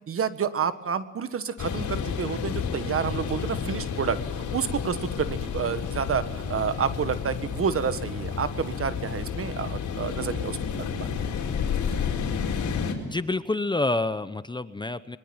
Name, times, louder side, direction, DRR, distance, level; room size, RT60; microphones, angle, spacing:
voice 1, 0.1-11.1, right 7 dB, 45° right, 12 dB, 1.6 m, -29 dB
sound 1, 1.6-12.9, left 6 dB, 70° left, 4.6 m, -31 dB
voice 2, 13.0-15.2, left 2 dB, 15° left, 13 dB, 0.9 m, -28 dB
23.0 x 21.5 x 9.0 m, 1.2 s
cardioid pair, 90°, 30 cm